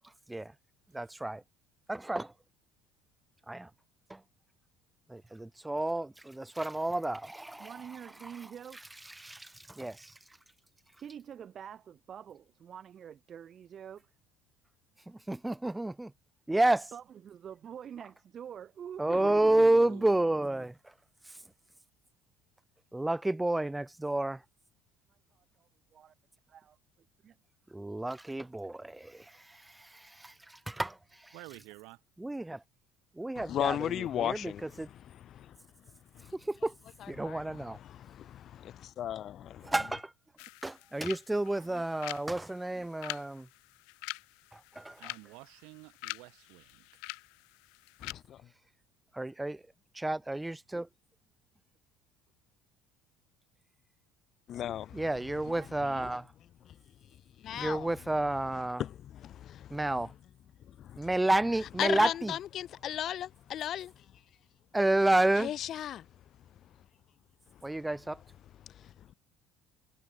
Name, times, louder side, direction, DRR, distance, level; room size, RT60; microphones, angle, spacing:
voice 1, 0.9-1.4 1.9-2.3 3.5-3.7 4.1-4.2 5.1-7.7 9.2-10.1 15.1-16.1 16.5-16.9 19.0-20.7 22.9-24.4 27.7-31.3 32.2-32.6 33.2-33.8 34.2-34.5 34.8-34.9 36.3-36.7 37.1-37.8 39.6-40.1 40.6-43.5 44.5-45.1 49.1-49.6 49.9-50.9 54.9-56.2 57.5-58.8 59.7-60.1 61.0-62.3 64.7-65.5 67.6-68.2, right 1 dB, 5° right, 1.4 m, -30 dB
voice 2, 7.6-8.8 11.0-14.1 16.9-20.0 25.1-26.1 26.5-26.8 27.2-27.4 41.4-41.8 55.5-56.1, right 8 dB, 35° right, 2.6 m, -47 dB
voice 3, 19.1-20.4 31.3-32.0 45.0-46.9, right 26 dB, 75° right, 3.7 m, -49 dB
voice 4, 33.4-36.3 37.0-39.7 48.0-48.5 54.5-56.1 56.6-60.1 60.6-61.1 61.6-64.2 65.3-66.8 67.5-67.8 68.6-69.1, left 11 dB, 45° left, 0.9 m, -38 dB
sound 1, 40.4-48.1, left 32 dB, 80° left, 4.1 m, -45 dB
cardioid pair, 140°, 0 cm